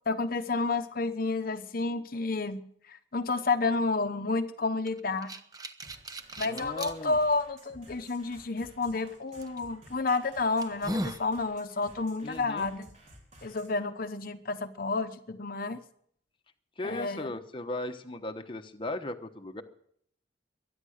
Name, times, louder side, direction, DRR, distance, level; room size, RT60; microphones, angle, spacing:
voice 1, 0.1-2.6 2.9-5.3 6.4-12.9 13.4-15.8 16.8-17.3, left 3 dB, 55° left, 8 dB, 0.9 m, -30 dB
sound 1, 4.9-6.9 7.6-7.7 9.4-9.6 10.1-10.2 10.6-11.3, right 1 dB, 20° right, 1.0 m, -36 dB
sound 2, 5.8-13.8, right 1 dB, 40° right, 4.2 m, -55 dB
voice 2, 6.4-7.2 12.2-12.7 16.8-19.6, left 2 dB, 30° left, 5 dB, 1.1 m, -37 dB
23.0 x 9.6 x 6.5 m, 0.65 s
head